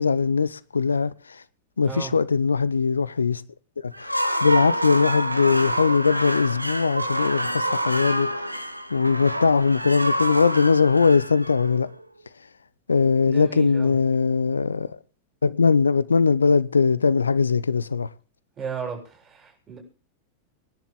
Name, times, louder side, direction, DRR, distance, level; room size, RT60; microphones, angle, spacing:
voice 1, 0.0-1.4 1.8-3.4 3.8-8.5 8.9-11.9 12.9-14.9 15.4-18.1, left 5 dB, 75° left, 0.7 m, -21 dB
voice 2, 1.8-2.1 13.2-13.9 18.6-19.8, right 6 dB, 25° right, 7.3 m, -35 dB
sound 1, 3.9-12.0, right 1 dB, 90° right, 1.0 m, -27 dB
26.0 x 11.0 x 3.8 m
figure-of-eight pair, 90°, 0 cm